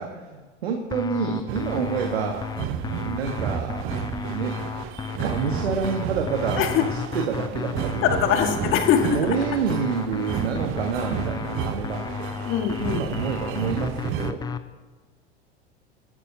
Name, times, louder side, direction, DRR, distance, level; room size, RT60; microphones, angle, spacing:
voice 1, 0.0-2.5 3.0-3.9 4.2-4.6 5.2-8.5 9.1-12.3 12.9-14.4, right 5 dB, 65° right, 4 dB, 1.4 m, -28 dB
sound 1, 0.9-14.6, left 6 dB, 10° left, 0.6 m, -33 dB
sound 2, 1.5-14.3, right 9 dB, 40° right, 1.0 m, -32 dB
voice 2, 8.0-9.2 12.5-13.1, left 8 dB, 35° left, 5 dB, 1.8 m, -22 dB
24.0 x 12.0 x 2.8 m, 1.3 s
figure-of-eight pair, 80°, 33 cm